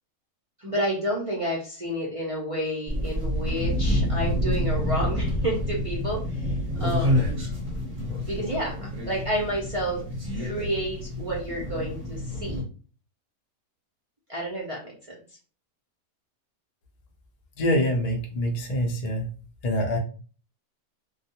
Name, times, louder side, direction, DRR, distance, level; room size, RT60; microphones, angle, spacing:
voice 1, 0.6-6.5 6.8-7.4 8.2-8.8 9.1-10.0 10.3-12.6 14.3-15.2, equal, 50° right, -5 dB, 0.4 m, -30 dB
sound 1, 2.9-12.6, left 1 dB, 30° right, 0.8 m, -28 dB
voice 2, 17.6-19.3 19.6-20.0, equal, 75° left, 1 dB, 0.3 m, -25 dB
2.3 x 2.2 x 2.8 m, 0.38 s
omnidirectional pair, 1.6 m